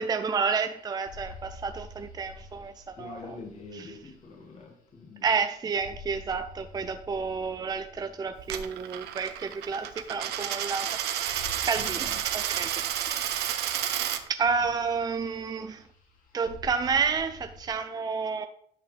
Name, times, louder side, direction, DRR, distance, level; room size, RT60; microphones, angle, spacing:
voice 1, 0.0-3.2 3.8-3.9 5.2-13.2 14.3-15.8 16.3-18.5, right 5 dB, 25° right, 0.5 m, -30 dB
sound 1, 0.7-5.5 5.7-10.0 10.4-10.8 11.1-17.7, left 3 dB, 55° left, 2.3 m, -49 dB
voice 2, 3.0-5.3 11.8-12.2, left 3 dB, 40° left, 1.8 m, -45 dB
Coin (dropping), 8.4-14.2, right 11 dB, 80° right, 0.9 m, -31 dB
10.5 x 5.8 x 3.3 m
cardioid pair, 110°, 17 cm